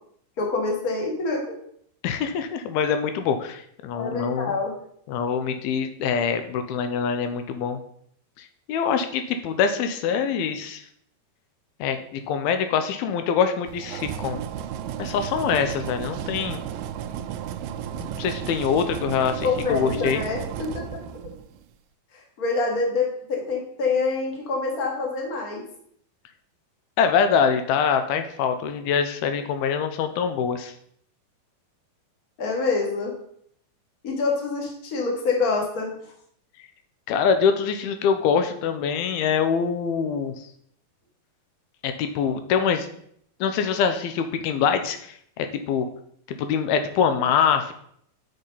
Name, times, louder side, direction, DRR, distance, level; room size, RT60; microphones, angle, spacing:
voice 1, 0.4-1.6 3.9-4.7 19.4-20.7 22.4-25.6 32.4-33.1 34.0-35.9, left 4 dB, 30° left, 0 dB, 1.8 m, -26 dB
voice 2, 2.0-4.5 5.1-7.8 8.7-10.8 11.8-14.4 15.0-16.6 18.0-20.2 27.0-30.7 37.1-40.3 41.8-42.9 43.4-45.0 45.4-45.9 46.4-47.7, left 7 dB, 85° left, 8 dB, 2.6 m, -24 dB
sound 1, 13.7-21.6, right 9 dB, 90° right, 1.9 m, -33 dB
6.8 x 6.6 x 5.6 m, 0.66 s
omnidirectional pair, 4.4 m